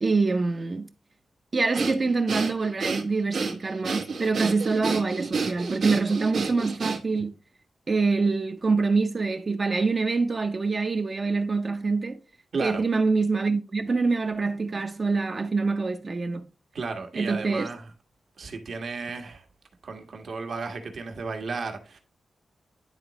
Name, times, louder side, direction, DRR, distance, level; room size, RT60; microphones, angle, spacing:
voice 1, 0.0-0.9 1.5-7.3 7.9-12.2 12.6-16.5 17.2-17.7, right 4 dB, 35° right, 0.6 m, -25 dB
Breathing, 1.7-7.3, right 4 dB, 80° right, 1.2 m, -30 dB
voice 2, 16.7-17.9 18.4-19.4 19.8-22.0, right 4 dB, 60° right, 1.4 m, -34 dB
10.5 x 3.9 x 3.0 m
wide cardioid pair, 120°, 0 cm